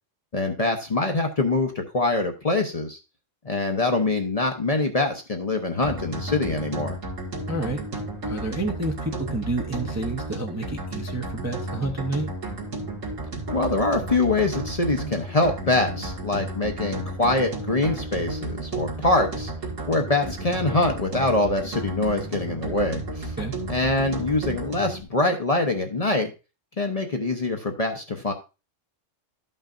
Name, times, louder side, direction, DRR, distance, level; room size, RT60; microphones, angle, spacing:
voice 1, 0.3-3.0 3.4-7.0 13.5-19.5 19.9-23.3 23.7-26.3 26.8-28.3, left 2 dB, 35° left, 4 dB, 0.7 m, -24 dB
sound 1, 5.8-25.0, right 2 dB, 90° right, 2.2 m, -33 dB
voice 2, 7.5-7.8 8.2-12.3 23.4-23.5, right 2 dB, 20° right, 1 dB, 0.6 m, -29 dB
13.0 x 5.5 x 2.5 m, 0.30 s
omnidirectional pair, 1.3 m